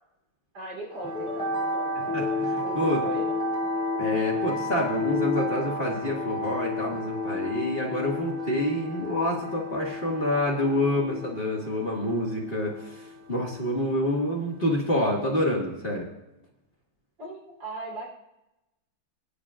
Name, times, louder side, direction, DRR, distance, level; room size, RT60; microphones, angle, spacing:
voice 1, 0.5-2.2 2.6-3.3 17.2-18.1, right 2 dB, 65° right, -1 dB, 4.3 m, -39 dB
sound 1, 0.9-15.0, left 2 dB, 5° left, 3.2 m, -32 dB
voice 2, 2.1-3.0 4.0-16.1, left 1 dB, 30° left, -3 dB, 2.1 m, -27 dB
23.0 x 10.5 x 2.5 m, 0.92 s
omnidirectional pair, 2.2 m